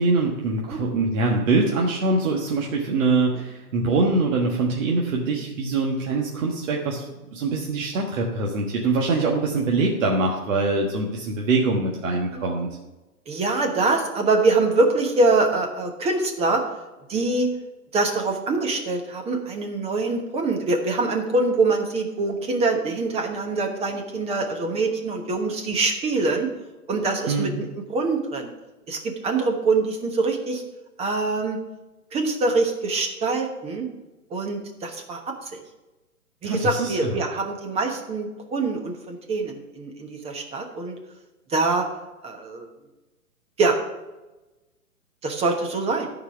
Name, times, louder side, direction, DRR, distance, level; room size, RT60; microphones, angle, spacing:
voice 1, 0.0-7.0 7.3-12.7 27.3-27.6 36.4-37.2, right 3 dB, 55° right, -1 dB, 1.6 m, -23 dB
voice 2, 13.3-16.6 17.1-17.5 17.9-26.5 26.9-28.5 28.9-30.6 31.0-31.6 32.1-33.8 34.3-35.2 36.4-41.0 41.5-41.8 42.2-42.7 43.6-43.8 45.2-46.1, right 3 dB, 15° right, 3 dB, 1.1 m, -24 dB
13.0 x 4.8 x 5.9 m, 1.1 s
figure-of-eight pair, 125°, 46 cm